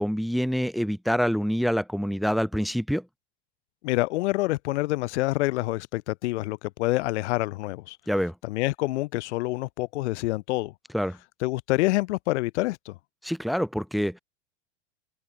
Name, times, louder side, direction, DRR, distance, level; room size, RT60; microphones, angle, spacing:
voice 1, 0.0-3.0 8.1-8.3 10.9-11.2 13.2-14.2, equal, ahead, 5.7 m, -26 dB
voice 2, 3.8-8.0 8.4-10.7 11.4-12.9, left 19 dB, 70° left, 8.0 m, -27 dB
open air
supercardioid pair, 130°, 36 cm